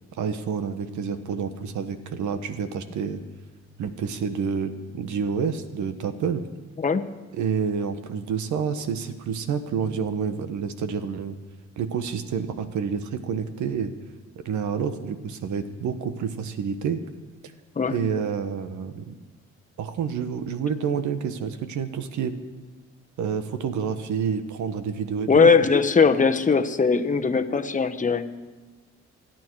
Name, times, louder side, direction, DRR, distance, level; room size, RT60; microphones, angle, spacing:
voice 1, 0.2-3.2 3.8-6.4 7.3-11.4 11.8-13.9 14.3-17.0 17.9-19.2 19.8-22.4 23.2-25.5, right 6 dB, 75° right, 9 dB, 1.3 m, -28 dB
voice 2, 25.3-28.2, left 5 dB, 25° left, 7 dB, 1.1 m, -20 dB
27.5 x 9.3 x 4.7 m, 1.4 s
cardioid pair, 90°, 30 cm